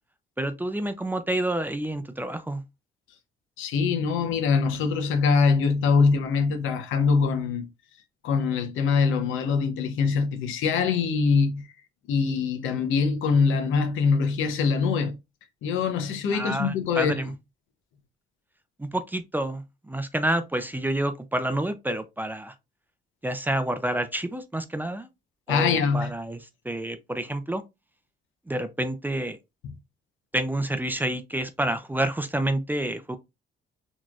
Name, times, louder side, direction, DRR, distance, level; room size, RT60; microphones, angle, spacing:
voice 1, 0.4-2.6 16.3-17.3 18.8-22.5 23.2-25.1 25.5-27.6 28.5-29.4 30.3-33.2, right 1 dB, 10° right, 0.5 m, -28 dB
voice 2, 3.6-7.7 8.2-11.6 12.1-15.2 15.6-17.2 25.5-26.1, left 5 dB, 85° left, 0.8 m, -23 dB
4.0 x 3.0 x 2.4 m
cardioid pair, 90°, 20 cm